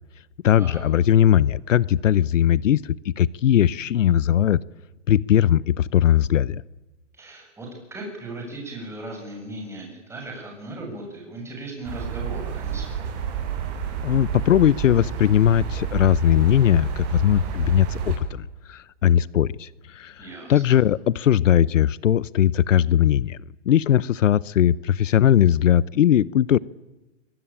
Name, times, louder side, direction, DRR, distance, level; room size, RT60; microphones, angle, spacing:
voice 1, 0.4-4.6 5.1-6.6 14.0-23.4 23.7-26.6, left 10 dB, 75° left, 22 dB, 0.8 m, -19 dB
voice 2, 7.1-13.1 20.2-20.8, right 1 dB, 5° right, 1 dB, 7.4 m, -37 dB
sound 1, 11.8-18.2, right 7 dB, 35° right, 7.1 m, -30 dB
24.0 x 23.0 x 8.9 m, 1.1 s
hypercardioid pair, 150°, 38 cm